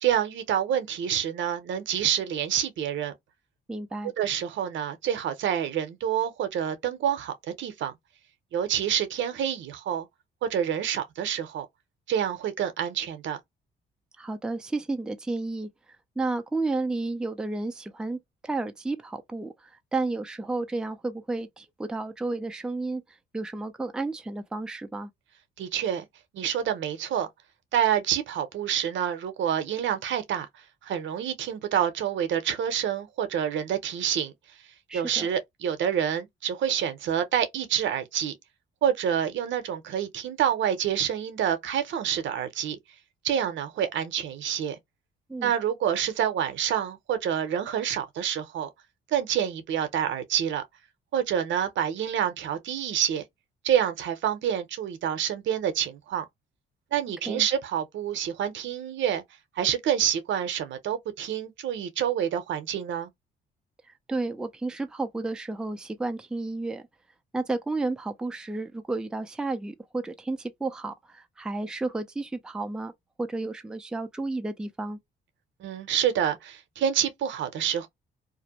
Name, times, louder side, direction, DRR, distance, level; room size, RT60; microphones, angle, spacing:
voice 1, 0.0-3.1 4.2-7.9 8.5-10.1 10.4-11.7 12.1-13.4 25.6-26.0 26.3-27.3 27.7-30.5 30.8-34.3 34.9-38.3 38.8-42.8 43.2-44.8 45.4-48.7 49.1-50.6 51.1-53.2 53.6-56.3 56.9-59.2 59.6-63.1 75.6-77.9, right 9 dB, 70° right, 0.7 m, -27 dB
voice 2, 3.7-4.1 14.2-15.7 16.2-18.2 18.4-25.1 34.9-35.3 45.3-45.5 57.3-57.5 64.1-66.8 67.3-72.9 73.2-75.0, right 3 dB, 5° right, 0.4 m, -32 dB
2.5 x 2.0 x 2.8 m
cardioid pair, 90°, 20 cm